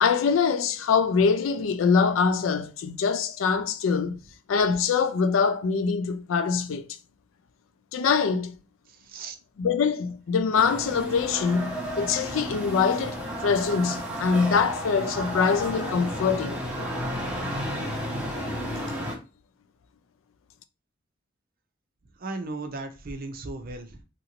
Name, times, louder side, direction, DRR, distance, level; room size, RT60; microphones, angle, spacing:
voice 1, 0.0-4.2 4.5-6.9 7.9-8.6 9.6-16.6, left 5 dB, 85° left, 0.4 m, -24 dB
voice 2, 8.9-9.3 22.1-24.0, right 2 dB, 50° right, 0.6 m, -36 dB
sound 1, 10.5-19.1, equal, 5° right, 0.9 m, -32 dB
3.0 x 2.5 x 2.9 m
head